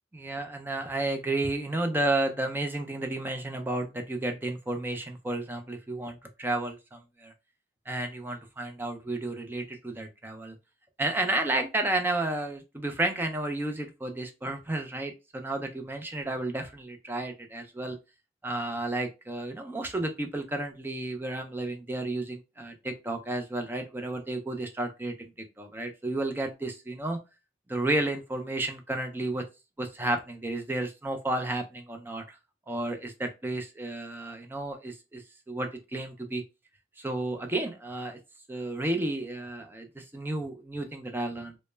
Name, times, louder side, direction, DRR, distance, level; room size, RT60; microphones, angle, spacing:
voice 1, 0.1-7.3 7.9-10.6 11.0-18.0 18.4-25.3 25.6-27.2 27.7-29.4 29.8-32.4 32.7-36.4 37.0-38.2 38.5-41.6, right 2 dB, 10° right, 5 dB, 0.4 m, -32 dB
2.1 x 2.0 x 3.2 m, 0.27 s
head